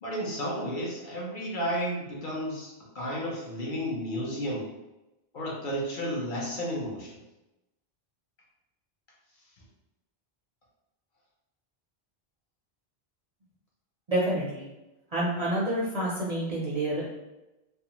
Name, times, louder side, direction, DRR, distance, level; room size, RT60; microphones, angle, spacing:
voice 1, 0.0-4.7 5.3-7.2, equal, 55° left, -4 dB, 0.8 m, -32 dB
voice 2, 14.1-14.7 15.1-17.1, right 1 dB, 50° right, -6 dB, 0.5 m, -28 dB
2.5 x 2.2 x 2.8 m, 0.99 s
omnidirectional pair, 1.1 m